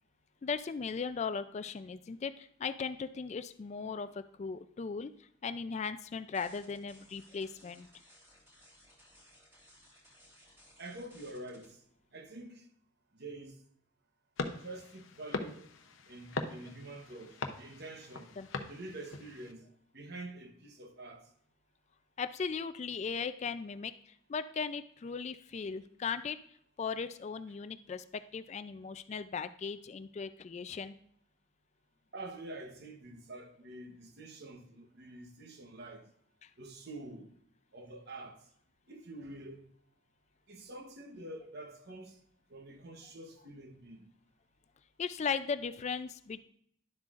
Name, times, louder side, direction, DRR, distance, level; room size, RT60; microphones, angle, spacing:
voice 1, 0.4-5.1 5.4-7.9 18.4-18.5 22.2-26.4 26.8-30.9 36.4-36.5 45.0-46.4, left 5 dB, 35° left, 0.3 m, -37 dB
sound 1, 6.3-11.6, equal, 10° right, 3.2 m, -61 dB
voice 2, 10.8-11.8 12.1-12.6 13.1-13.6 14.5-15.7 16.1-18.4 18.7-19.6 19.9-21.2 32.1-36.1 36.6-37.3 37.7-38.4 38.9-39.6 40.5-42.2 42.5-44.1, right 2 dB, 55° right, 1.0 m, -47 dB
sound 2, 14.4-19.5, left 3 dB, 75° left, 0.7 m, -41 dB
11.0 x 7.6 x 2.5 m
head